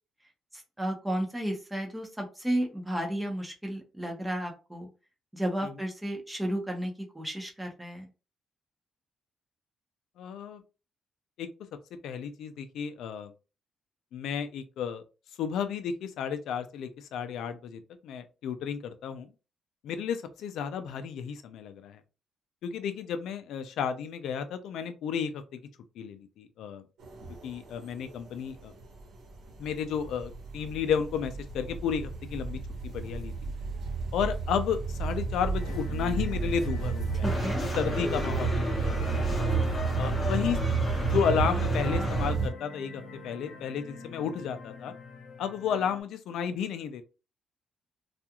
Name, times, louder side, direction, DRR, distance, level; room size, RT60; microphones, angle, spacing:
voice 1, 0.5-4.9 5.3-8.1 37.2-37.6, right 1 dB, 5° right, 1 dB, 0.7 m, -33 dB
voice 2, 10.2-10.6 11.4-11.5 12.0-13.3 14.1-15.0 15.4-19.3 19.8-22.0 22.6-25.6 26.0-26.8 27.4-28.7 29.6-33.5 34.1-37.3 37.8-39.4 40.0-40.6 41.1-44.9 45.4-47.0, left 7 dB, 85° left, 9 dB, 0.4 m, -32 dB
sound 1, 27.0-42.5, right 4 dB, 70° right, 1.0 m, -31 dB
sound 2, 35.5-46.0, left 2 dB, 55° left, 0.9 m, -46 dB
sound 3, 37.2-42.3, left 3 dB, 30° left, 0.8 m, -35 dB
2.4 x 2.3 x 2.8 m, 0.31 s
cardioid pair, 145°, 0 cm